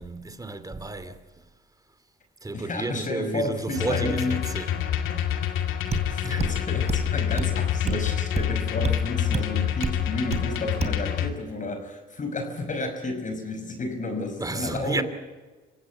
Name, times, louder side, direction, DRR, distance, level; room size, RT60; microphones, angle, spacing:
voice 1, 0.0-1.4 2.4-5.0 6.2-6.5 14.4-15.0, right 3 dB, 20° right, 2.6 m, -32 dB
voice 2, 2.5-4.4 5.1-5.2 5.9-15.0, left 2 dB, 40° left, 5.3 m, -31 dB
sound 1, 3.8-11.3, left 10 dB, 90° left, 2.3 m, -27 dB
sound 2, 5.6-5.7 5.9-6.1 6.4-6.6 6.9-7.1 7.4-7.5 7.9-8.0 8.4-8.5 8.8-9.0 9.3-9.5 9.8-10.0 10.3-10.5 10.8-11.0, right 4 dB, 35° right, 3.0 m, -28 dB
27.0 x 16.5 x 8.3 m
cardioid pair, 90°, 20 cm